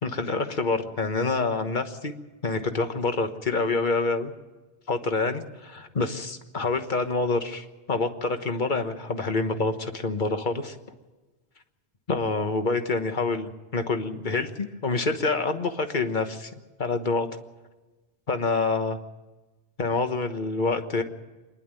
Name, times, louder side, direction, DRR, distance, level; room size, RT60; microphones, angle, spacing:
voice 1, 0.0-2.1 2.4-4.3 4.9-10.8 12.1-16.5 16.8-17.3 18.3-19.0 19.8-21.0, left 3 dB, 50° left, 7 dB, 1.5 m, -27 dB
26.0 x 11.0 x 9.0 m, 1.2 s
omnidirectional pair, 1.1 m